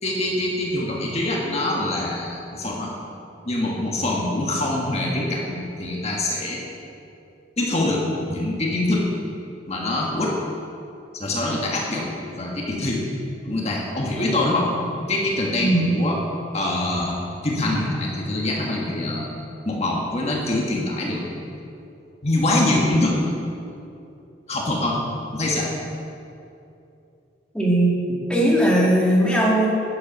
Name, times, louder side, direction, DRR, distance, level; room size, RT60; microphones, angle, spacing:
voice 1, 0.0-2.9 3.4-6.6 7.6-9.1 9.7-10.4 11.1-13.1 13.4-14.7 15.1-16.2 16.5-19.3 19.6-21.2 22.2-23.2 24.5-25.0 25.3-25.7, left 1 dB, 35° left, -2 dB, 1.5 m, -24 dB
voice 2, 27.5-29.7, right 1 dB, 5° left, -5 dB, 2.3 m, -19 dB
11.5 x 8.6 x 5.4 m, 2.7 s
head